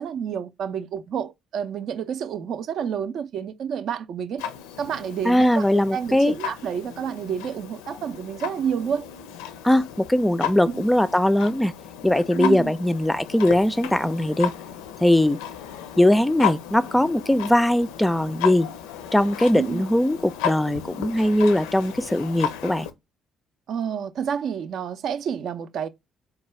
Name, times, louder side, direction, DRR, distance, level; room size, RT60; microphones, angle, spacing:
voice 1, 0.0-4.4 4.8-9.1 10.7-10.8 12.3-12.7 19.5-19.8 23.7-25.9, right 8 dB, 55° right, 0.5 m, -29 dB
Clock, 4.4-22.9, left 10 dB, 70° left, 0.4 m, -34 dB
voice 2, 5.2-6.3 9.6-11.7 12.0-14.5 15.0-15.4 16.0-18.7 19.1-22.9, left 1 dB, 10° left, 0.3 m, -20 dB
4.5 x 2.3 x 3.1 m
figure-of-eight pair, 45°, 0 cm